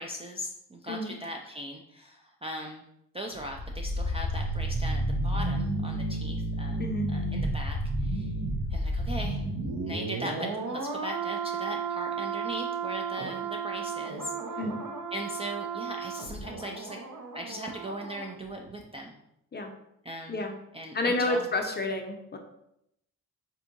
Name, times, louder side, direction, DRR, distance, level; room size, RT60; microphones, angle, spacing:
voice 1, 0.0-2.8 3.1-6.8 7.1-8.3 8.7-9.4 9.8-14.3 15.1-17.0 17.3-19.2 20.0-20.5 20.7-21.5, equal, 15° right, 1 dB, 0.3 m, -39 dB
sound 1, 3.3-18.3 18.6-18.7, right 2 dB, 55° right, 0.7 m, -32 dB
voice 2, 20.9-22.4, left 2 dB, 25° left, 3 dB, 0.6 m, -30 dB
3.4 x 2.7 x 2.5 m, 0.79 s
supercardioid pair, 50°, 37 cm